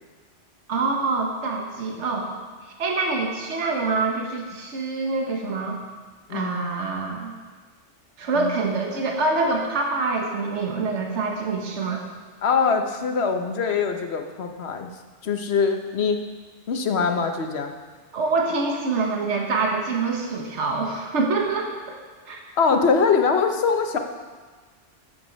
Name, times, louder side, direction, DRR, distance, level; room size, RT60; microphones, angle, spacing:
voice 1, 0.7-2.3 2.8-5.8 6.3-7.3 8.2-12.0 18.1-21.9 22.3-22.4, right 3 dB, 75° right, 1 dB, 1.5 m, -25 dB
voice 2, 6.3-6.7 8.3-8.5 12.4-14.9 15.2-16.2 16.7-17.7 22.6-24.0, left 5 dB, 65° left, 5 dB, 1.2 m, -23 dB
13.0 x 7.3 x 5.2 m, 1.4 s
omnidirectional pair, 1.2 m